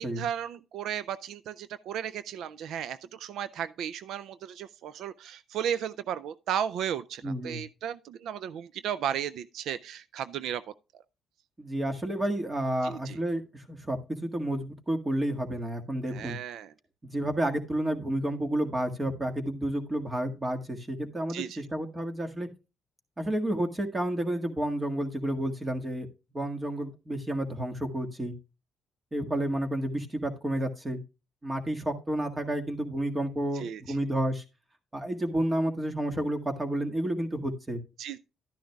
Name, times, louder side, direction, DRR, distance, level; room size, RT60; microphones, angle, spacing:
voice 1, 0.0-10.6 12.8-13.2 16.1-16.7 21.3-21.6 33.5-34.0 38.0-38.2, right 9 dB, 80° right, 0.4 m, -35 dB
voice 2, 7.2-7.6 11.6-16.4 17.0-22.5 23.2-26.1 26.3-28.3 29.1-31.0 31.4-34.4 34.9-37.8, right 1 dB, 20° right, 1.7 m, -30 dB
12.0 x 10.0 x 2.3 m
cardioid pair, 90°, 0 cm